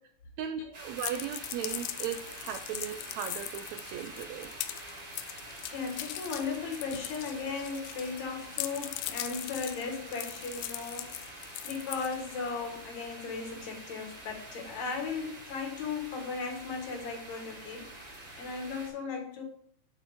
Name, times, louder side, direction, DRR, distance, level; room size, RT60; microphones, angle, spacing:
voice 1, 0.4-4.5, right 9 dB, 85° right, 8 dB, 1.5 m, -37 dB
sound 1, 0.7-18.9, right 1 dB, 40° right, 4.1 m, -46 dB
sound 2, 1.0-8.2 8.5-12.5, left 14 dB, 80° left, 2.0 m, -40 dB
voice 2, 5.7-17.9 18.4-19.4, left 5 dB, 65° left, 2 dB, 2.7 m, -37 dB
8.5 x 4.5 x 4.9 m, 0.63 s
omnidirectional pair, 3.7 m